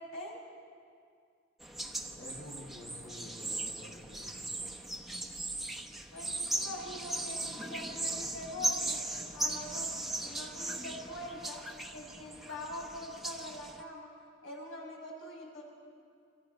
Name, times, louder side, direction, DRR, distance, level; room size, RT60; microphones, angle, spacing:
sound 1, 1.6-13.8, right 2 dB, ahead, 1.0 m, -38 dB
voice 1, 2.1-4.7, left 1 dB, 70° left, -9 dB, 6.8 m, -50 dB
voice 2, 6.1-9.0 9.3-9.9 10.2-11.6 11.9-14.1 14.4-15.6, left 1 dB, 90° left, -1 dB, 6.5 m, -43 dB
27.0 x 26.0 x 5.3 m, 2.3 s
head